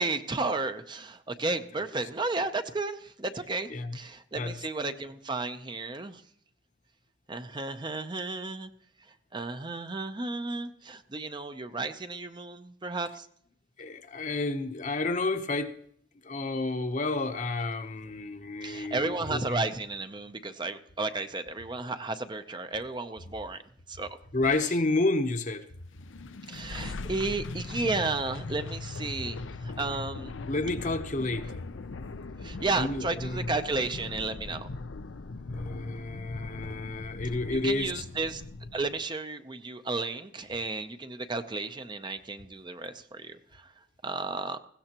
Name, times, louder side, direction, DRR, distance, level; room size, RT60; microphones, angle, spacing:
voice 1, 0.0-6.2 7.3-8.7 9.3-13.3 18.6-23.6 23.9-24.2 26.5-30.3 32.4-34.7 37.5-38.4 38.7-43.7 44.0-44.6, right 3 dB, 25° right, 0.6 m, -33 dB
voice 2, 13.8-15.7 16.2-19.6 24.3-25.6 30.5-31.6 32.8-33.5 35.5-37.9, left 2 dB, 40° left, 0.9 m, -30 dB
sound 1, 25.9-39.0, left 3 dB, 85° left, 0.6 m, -40 dB
20.5 x 16.0 x 3.0 m
head